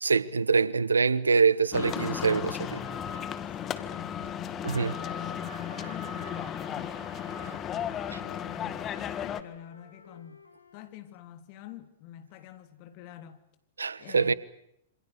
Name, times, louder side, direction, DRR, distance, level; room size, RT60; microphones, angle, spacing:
voice 1, 0.0-2.8 4.6-4.9 13.8-14.3, right 5 dB, 85° right, 1.2 m, -24 dB
sound 1, 1.7-9.4, left 9 dB, 30° left, 2.0 m, -35 dB
sound 2, 2.7-3.3 4.6-7.7, right 6 dB, 65° right, 4.3 m, -49 dB
Wind instrument woodwind instrument, 3.2-6.6 7.1-10.9, left 4 dB, 90° left, 4.0 m, -54 dB
voice 2, 3.5-10.4 10.7-13.4 14.0-14.3, left 11 dB, 45° left, 3.4 m, -47 dB
28.0 x 26.5 x 6.6 m
hypercardioid pair, 105°, 0 cm